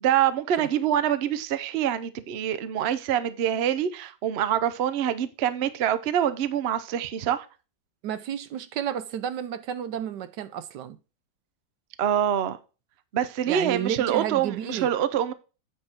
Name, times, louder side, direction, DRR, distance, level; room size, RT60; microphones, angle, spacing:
voice 1, 0.0-7.5 12.0-12.6 13.1-15.3, right 10 dB, 85° right, 0.5 m, -25 dB
voice 2, 8.0-11.0 13.5-14.9, right 10 dB, 70° right, 1.2 m, -31 dB
8.7 x 5.5 x 4.4 m
omnidirectional pair, 2.1 m